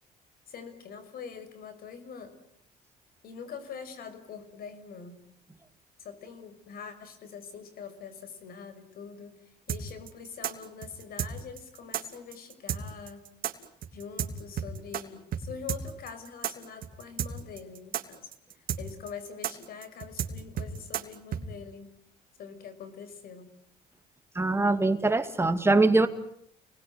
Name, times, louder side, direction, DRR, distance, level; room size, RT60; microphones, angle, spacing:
voice 1, 0.5-2.3 3.2-5.2 6.0-9.3 9.7-13.2 13.9-18.3 18.8-21.9 22.4-23.5, left 6 dB, 60° left, 11 dB, 5.8 m, -44 dB
sound 1, 9.7-15.0 15.3-15.4 15.7-21.4, right 9 dB, 55° right, 3.2 m, -32 dB
voice 2, 24.4-26.1, right 2 dB, 15° right, 8 dB, 2.3 m, -23 dB
30.0 x 20.5 x 9.6 m, 0.70 s
cardioid pair, 110°, 17 cm